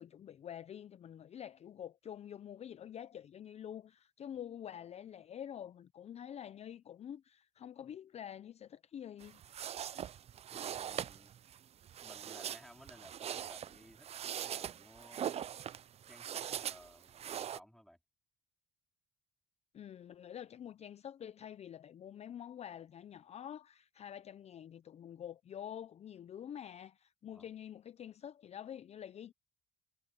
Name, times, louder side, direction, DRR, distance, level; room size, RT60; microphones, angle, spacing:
voice 1, 0.0-9.4 19.7-29.3, left 9 dB, 40° left, 0.5 m, -47 dB
sound 1, 9.2-17.6, right 10 dB, 40° right, 0.4 m, -42 dB
voice 2, 10.5-11.3 12.0-14.1 14.4-15.4 16.1-18.0 27.3-27.5, equal, ahead, 3.6 m, -58 dB
cardioid pair, 110°, 17 cm